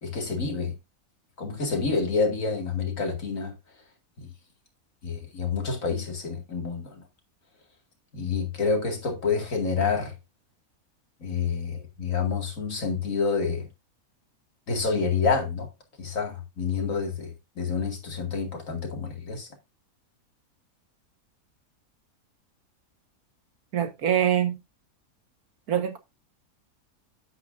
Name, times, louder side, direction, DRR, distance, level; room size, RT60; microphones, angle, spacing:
voice 1, 0.0-0.7 1.4-3.5 5.0-7.0 8.1-10.1 11.2-13.7 14.7-15.7 16.0-19.5, left 5 dB, 60° left, 2.5 m, -28 dB
voice 2, 23.7-24.6 25.7-26.0, right 10 dB, 90° right, 1.9 m, -24 dB
9.6 x 8.7 x 2.6 m
omnidirectional pair, 1.6 m